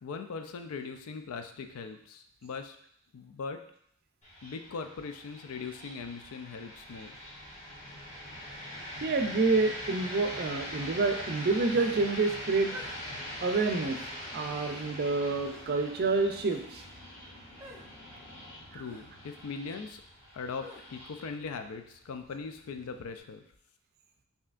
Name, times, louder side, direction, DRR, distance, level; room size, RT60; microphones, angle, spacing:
voice 1, 0.0-2.8 3.1-3.6 4.4-7.2 18.7-20.0 20.3-23.4, left 5 dB, 70° left, 7 dB, 0.4 m, -40 dB
sound 1, 4.2-23.2, equal, 35° left, 1.2 m, -43 dB
voice 2, 9.0-12.7 13.4-14.0 14.3-16.8 18.7-18.8, right 3 dB, 45° right, 5 dB, 0.4 m, -28 dB
sound 2, 11.7-12.0 12.7-13.0 13.4-13.7 14.6-14.8 15.4-15.6 16.4-16.7 17.6-17.8 18.8-19.1 20.6-20.8, equal, 10° right, 0.7 m, -48 dB
5.5 x 2.7 x 2.5 m, 0.69 s
head